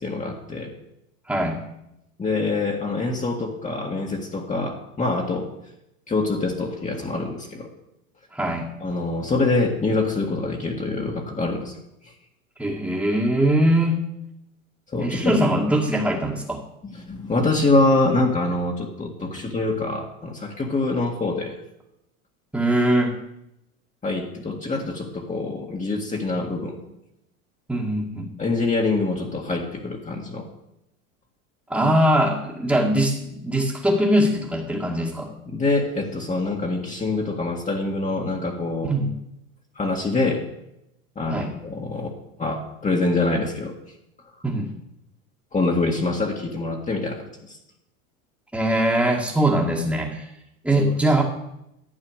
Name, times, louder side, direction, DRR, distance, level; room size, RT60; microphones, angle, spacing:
voice 1, 0.0-0.7 2.2-5.5 6.1-7.7 8.8-11.7 14.9-15.4 16.8-21.6 24.0-26.8 28.4-30.4 35.5-38.9 39.8-40.5 41.2-42.1 42.4-43.7 45.5-47.2 50.8-50.9, left 3 dB, 15° left, 0 dB, 1.9 m, -25 dB
voice 2, 1.3-1.6 8.3-8.7 12.6-14.0 15.0-16.6 22.5-23.2 27.7-28.3 31.7-35.3 38.8-39.1 41.3-41.5 44.4-44.7 48.5-50.3 50.6-51.2, right 1 dB, 5° right, -4 dB, 2.0 m, -21 dB
11.5 x 8.1 x 6.5 m, 0.85 s
hypercardioid pair, 95°, 42 cm